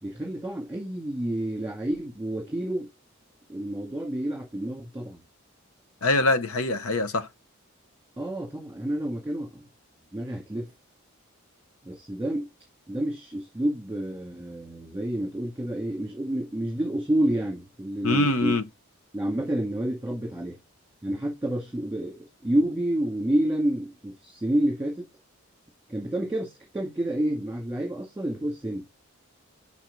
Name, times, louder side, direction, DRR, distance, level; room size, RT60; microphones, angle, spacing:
voice 1, 0.0-2.9 3.5-5.2 8.2-9.7 10.1-10.7 11.8-12.5 12.9-18.6 19.1-20.6 21.0-25.1 25.9-28.9, right 1 dB, 10° right, 1.9 m, -29 dB
voice 2, 6.0-7.3 18.0-18.6, left 2 dB, 85° left, 0.9 m, -23 dB
6.0 x 5.8 x 3.9 m
head